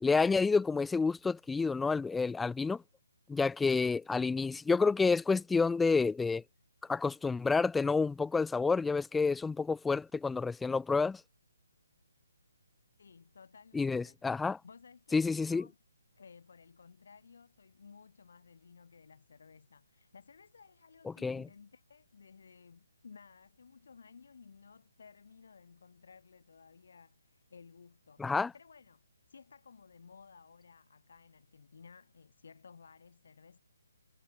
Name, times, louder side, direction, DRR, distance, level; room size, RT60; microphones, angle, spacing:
voice 1, 0.0-2.8 3.3-6.4 6.9-11.2 13.7-14.6 15.1-15.6 21.2-21.5 28.2-28.5, left 4 dB, 5° left, 0.5 m, -29 dB
voice 2, 13.0-14.2 14.6-15.8 16.1-33.6, left 5 dB, 65° left, 5.7 m, -57 dB
figure-of-eight pair, 150°, 0 cm